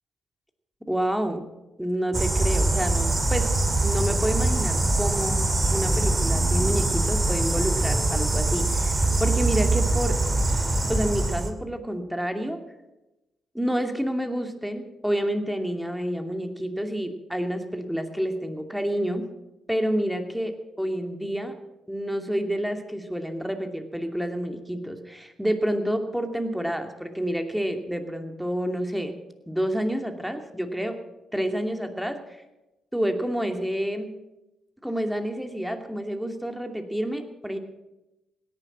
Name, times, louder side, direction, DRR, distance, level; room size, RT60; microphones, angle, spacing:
voice 1, 0.9-1.4 1.8-3.5 3.8-5.4 5.7-10.2 10.9-12.6 13.5-19.2 19.7-21.5 21.9-29.2 29.5-31.0 31.3-32.2 32.9-34.1 34.8-37.6, equal, 5° right, 6 dB, 2.6 m, -28 dB
sound 1, 2.1-11.5, right 2 dB, 30° right, 2.3 m, -23 dB
17.5 x 10.5 x 7.3 m, 1.0 s
hypercardioid pair, 45°, 0 cm